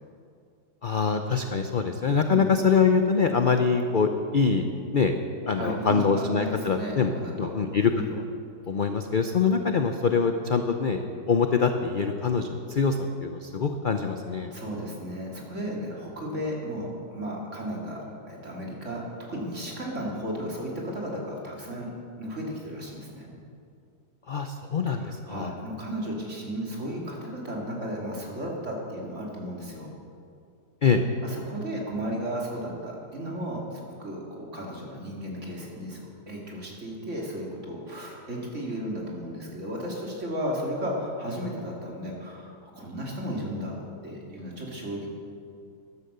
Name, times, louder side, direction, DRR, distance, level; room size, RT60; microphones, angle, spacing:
voice 1, 0.8-4.6 4.9-5.2 5.5-7.1 7.4-7.9 8.7-11.0 11.3-14.5 24.3-25.5 30.8-31.0, left 5 dB, 55° left, 6 dB, 0.5 m, -24 dB
voice 2, 5.5-7.5 7.9-8.1 14.5-23.3 25.0-29.9 31.2-45.1, equal, 45° right, -2 dB, 3.0 m, -34 dB
13.5 x 11.5 x 6.8 m, 2.5 s
omnidirectional pair, 1.8 m